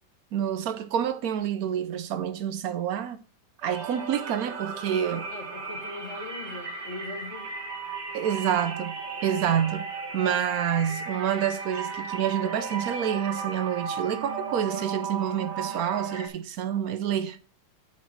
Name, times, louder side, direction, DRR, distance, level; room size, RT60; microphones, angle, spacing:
voice 1, 0.3-3.2 3.6-5.3 8.1-9.9 10.1-17.4, right 9 dB, 65° right, 1.0 m, -28 dB
sound 1, 3.6-16.3, right 5 dB, 40° right, 1.2 m, -35 dB
voice 2, 5.3-7.5, left 2 dB, 35° left, 2.2 m, -40 dB
8.6 x 4.2 x 6.0 m
omnidirectional pair, 2.0 m